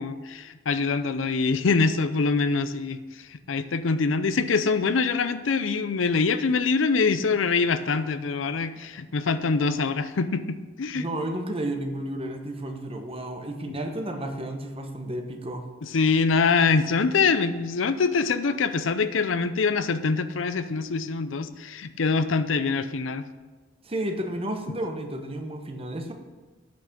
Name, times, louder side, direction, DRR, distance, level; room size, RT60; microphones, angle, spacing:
voice 1, 0.0-11.1 13.7-13.8 15.8-23.3, left 4 dB, 85° left, 12 dB, 0.6 m, -24 dB
voice 2, 10.9-15.7 23.8-26.1, right 1 dB, 30° right, 4 dB, 1.0 m, -32 dB
8.6 x 6.0 x 6.5 m, 1.3 s
head